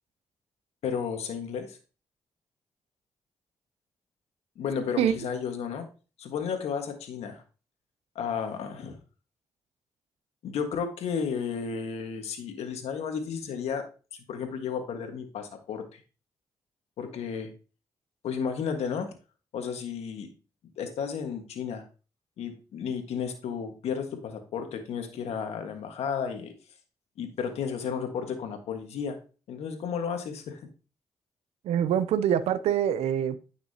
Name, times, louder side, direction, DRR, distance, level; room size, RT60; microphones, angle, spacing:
voice 1, 0.8-1.8 4.5-5.9 6.2-7.4 8.1-9.0 10.4-13.8 14.1-16.0 17.0-17.5 18.2-19.1 19.5-20.3 20.8-21.8 22.4-26.5 27.2-29.2 29.5-30.6, left 6 dB, 80° left, 5 dB, 1.5 m, -33 dB
voice 2, 31.6-33.4, right 9 dB, 85° right, 15 dB, 0.6 m, -24 dB
9.7 x 6.0 x 2.8 m, 0.34 s
supercardioid pair, 50°, 11 cm